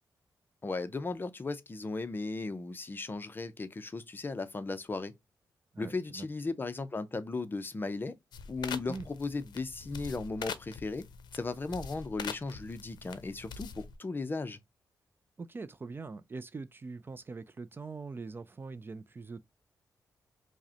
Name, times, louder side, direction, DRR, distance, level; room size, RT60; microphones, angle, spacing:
voice 1, 0.6-5.1 5.8-8.2 8.5-11.1 11.3-14.6, left 3 dB, 30° left, 0.5 m, -36 dB
voice 2, 5.7-6.3 8.9-9.1 15.4-19.4, right 4 dB, 30° right, 0.3 m, -42 dB
sound 1, 8.3-14.0, left 6 dB, 80° left, 0.5 m, -44 dB
4.7 x 2.1 x 2.7 m
cardioid pair, 95°, 7 cm